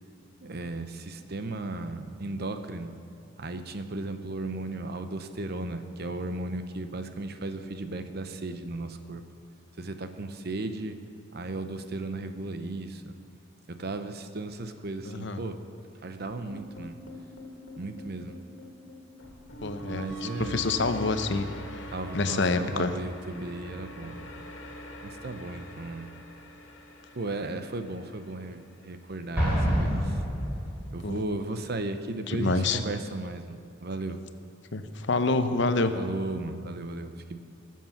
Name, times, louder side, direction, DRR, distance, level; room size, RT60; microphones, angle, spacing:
voice 1, 0.4-3.0 3.4-9.2 9.8-11.0 11.3-13.1 13.7-15.6 16.0-17.0 17.8-18.4 19.9-20.6 21.9-24.3 25.0-26.1 27.1-30.2 30.9-34.2 36.0-37.4, right 2 dB, 55° right, 8 dB, 0.8 m, -35 dB
voice 2, 15.1-15.4 19.6-21.5 22.1-22.9 31.0-31.2 32.3-32.8 34.7-35.9, left 3 dB, 65° left, 9 dB, 0.8 m, -27 dB
sound 1, 16.5-28.7, equal, 80° left, 2.0 m, -43 dB
Explosion, 29.4-31.1, equal, 10° right, 4.0 m, -27 dB
19.5 x 7.5 x 5.8 m, 2.3 s
head